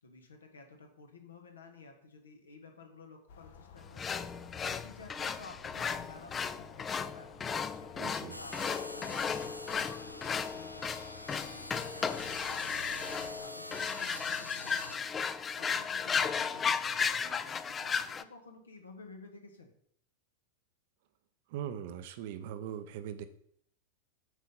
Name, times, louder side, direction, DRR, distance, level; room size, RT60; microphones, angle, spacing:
voice 1, 0.0-4.1 4.6-7.3 7.7-10.9 11.4-15.1 15.6-19.7, left 3 dB, 70° left, 4 dB, 1.3 m, -53 dB
sound 1, 3.3-13.5, left 6 dB, 55° left, 0.8 m, -55 dB
sound 2, 4.0-18.2, left 6 dB, 20° left, 0.4 m, -35 dB
voice 2, 8.0-8.4 21.5-23.3, right 9 dB, 50° right, 11 dB, 0.6 m, -40 dB
sound 3, 8.3-15.0, left 1 dB, 90° left, 0.4 m, -46 dB
8.0 x 4.6 x 5.4 m, 0.65 s
figure-of-eight pair, 90°, 0 cm